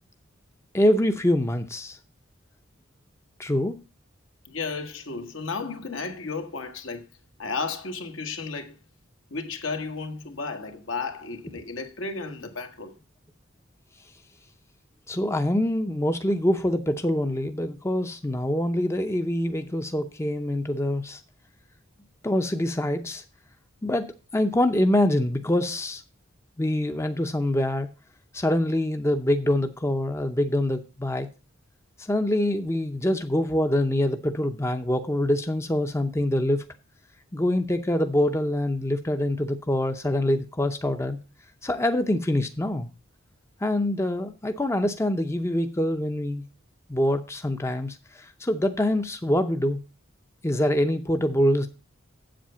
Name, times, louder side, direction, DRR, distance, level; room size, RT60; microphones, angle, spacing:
voice 1, 0.7-2.0 3.4-3.8 15.1-21.2 22.2-23.2 23.8-26.0 26.6-27.9 28.3-31.3 32.0-36.6 37.3-41.2 41.6-42.9 43.6-46.4 46.9-49.8 50.4-51.7, left 1 dB, 15° left, 0.6 m, -25 dB
voice 2, 4.4-7.1 7.4-8.7 9.3-12.9, left 4 dB, 75° left, 1.5 m, -33 dB
7.9 x 7.7 x 5.6 m
head